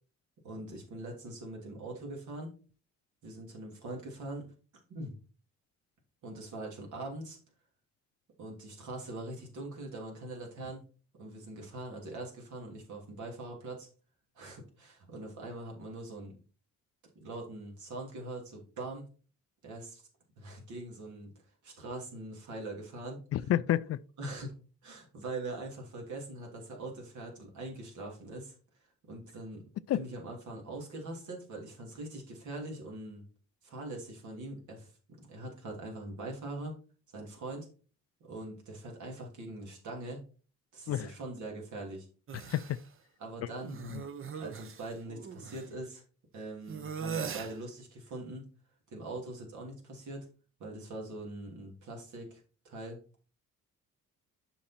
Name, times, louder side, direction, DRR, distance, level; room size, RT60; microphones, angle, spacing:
voice 1, 0.4-2.5 3.2-4.4 4.9-5.1 6.2-7.4 8.4-10.8 11.2-13.9 14.3-16.3 17.2-19.1 19.6-20.0 20.4-21.3 21.6-23.2 24.2-24.5 24.8-28.5 29.1-29.6 29.9-33.2 33.6-34.9 35.2-36.8 37.1-37.7 38.2-40.2 40.7-42.1 43.2-46.0 46.3-48.5 48.9-50.3 50.6-53.0, right 2 dB, 75° right, 3.0 m, -42 dB
voice 2, 23.3-24.0 29.9-30.0 40.9-41.1 42.3-42.8 43.8-44.0, left 12 dB, 55° left, 0.4 m, -30 dB
sound 1, 42.3-42.8 43.6-45.7 46.7-47.6, right 6 dB, 45° right, 0.9 m, -40 dB
7.2 x 5.4 x 4.4 m
cardioid pair, 90°, 30 cm